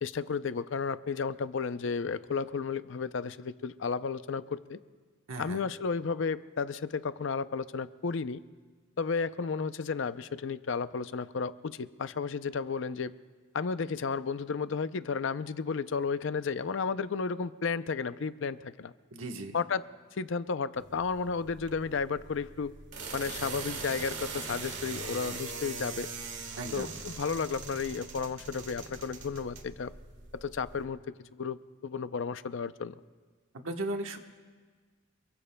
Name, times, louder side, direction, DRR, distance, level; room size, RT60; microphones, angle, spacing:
voice 1, 0.0-4.8 5.4-8.4 9.0-13.1 13.5-18.9 19.5-19.9 20.2-22.7 23.1-26.1 26.7-29.9 30.3-33.0, left 5 dB, 60° left, 13 dB, 0.5 m, -33 dB
voice 2, 5.3-5.7 19.1-19.6 26.6-26.9 33.5-34.2, right 2 dB, 75° right, 4 dB, 1.2 m, -36 dB
sound 1, 20.7-30.8, right 4 dB, 60° right, 1.7 m, -41 dB
28.5 x 22.0 x 2.2 m, 1.5 s
head